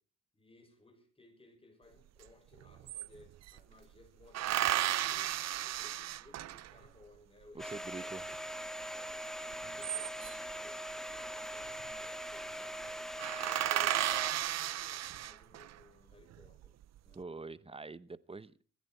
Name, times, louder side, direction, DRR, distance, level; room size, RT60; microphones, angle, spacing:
voice 1, 0.3-8.5 8.9-16.8 17.0-17.2, left 2 dB, 20° left, 6.9 m, -60 dB
sound 1, 2.2-2.3 2.5-3.6 4.3-6.9 9.5-10.5 11.7-12.1 12.4-12.5 12.8-12.9 13.2-15.7 16.3-17.0, right 13 dB, 60° right, 0.6 m, -34 dB
voice 2, 7.5-8.3 17.1-18.5, right 3 dB, 20° right, 0.9 m, -45 dB
Domestic sounds home sounds, 7.6-14.3, equal, ahead, 1.8 m, -42 dB
25.5 x 10.5 x 4.6 m
cardioid pair, 90°, 30 cm